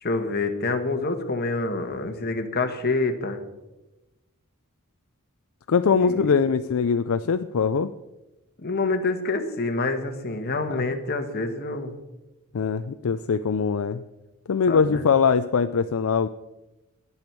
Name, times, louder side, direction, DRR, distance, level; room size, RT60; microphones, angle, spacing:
voice 1, 0.0-3.4 6.0-6.3 8.6-11.9 14.7-15.0, left 3 dB, 45° left, 6 dB, 1.3 m, -27 dB
voice 2, 5.7-7.9 10.7-10.8 12.5-14.0 14.5-16.3, left 5 dB, 65° left, 11 dB, 0.4 m, -22 dB
21.0 x 7.1 x 4.6 m, 1.0 s
head